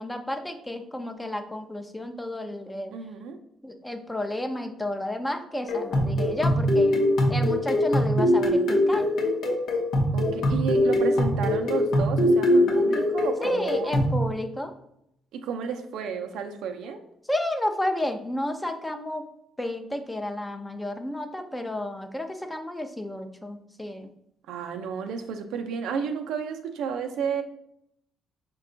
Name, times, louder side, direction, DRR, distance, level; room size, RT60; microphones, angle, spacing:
voice 1, 0.0-2.9 3.6-7.0 7.3-9.0 13.4-14.7 17.3-19.2 19.6-24.1, left 1 dB, 10° left, 6 dB, 0.5 m, -31 dB
voice 2, 2.9-3.4 10.1-14.0 15.3-17.0 24.5-27.4, right 6 dB, 85° right, 5 dB, 0.5 m, -32 dB
sound 1, 5.7-14.2, left 1 dB, 75° left, 0.8 m, -22 dB
5.2 x 2.3 x 3.8 m, 0.77 s
cardioid pair, 90°, 0 cm